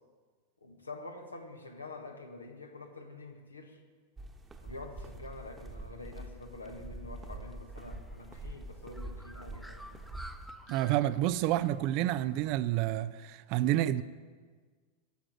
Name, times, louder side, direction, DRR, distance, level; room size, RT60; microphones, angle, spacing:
voice 1, 0.6-3.8 4.6-10.0, left 2 dB, 80° left, 1.6 m, -47 dB
sound 1, 4.2-10.5, right 2 dB, 15° right, 1.2 m, -45 dB
Bird, 7.7-12.9, equal, ahead, 0.8 m, -53 dB
voice 2, 10.7-14.0, right 13 dB, 45° right, 0.5 m, -29 dB
12.5 x 7.5 x 9.1 m
figure-of-eight pair, 90°, 0 cm